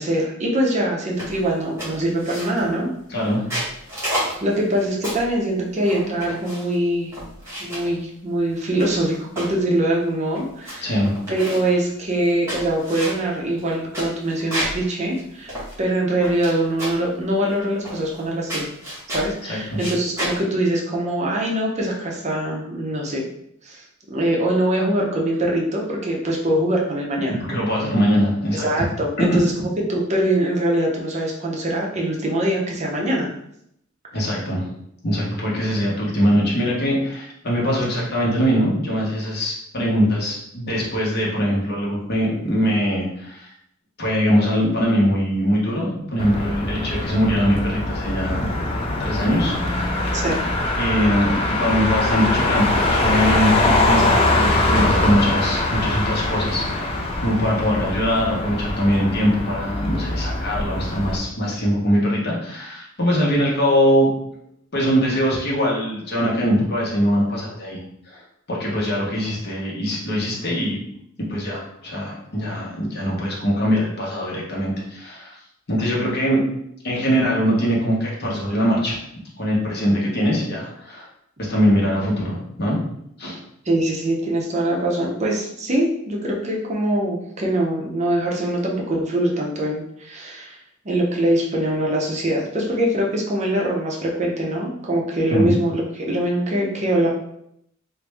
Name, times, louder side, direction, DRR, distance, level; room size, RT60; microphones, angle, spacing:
voice 1, 0.0-2.9 4.4-7.1 7.6-11.0 11.3-18.7 19.1-23.3 23.6-27.4 28.6-33.3 50.1-50.4 83.7-90.6 90.8-97.1, right 1 dB, 35° right, -1 dB, 0.6 m, -23 dB
sound 1, 1.2-1.5 1.8-2.8 3.3-5.3 5.8-6.7 7.1-7.9 8.5-9.6 10.0-10.1 10.3-10.7 11.0-11.7 12.2-14.8 15.1-15.2 15.5-16.5 16.8-17.1 17.8-18.2 18.5-19.3 19.7-20.4, equal, 15° right, 1.4 m, -30 dB
voice 2, 3.1-3.6 10.8-11.2 19.4-19.8 27.3-28.9 29.2-29.3 29.6-29.7 34.1-34.7 35.0-43.5 44.0-48.5 49.0-50.2 50.8-51.3 51.6-64.1 64.7-67.8 68.1-68.2 68.5-70.8 71.3-75.4 75.7-76.4 76.8-79.0 79.4-81.1 81.4-82.8 83.2-83.4 95.3-95.5, equal, 55° left, -4 dB, 1.0 m, -22 dB
Motor vehicle (road), 46.2-61.2, left 2 dB, 30° left, 0.5 m, -22 dB
3.1 x 2.5 x 3.3 m, 0.74 s
head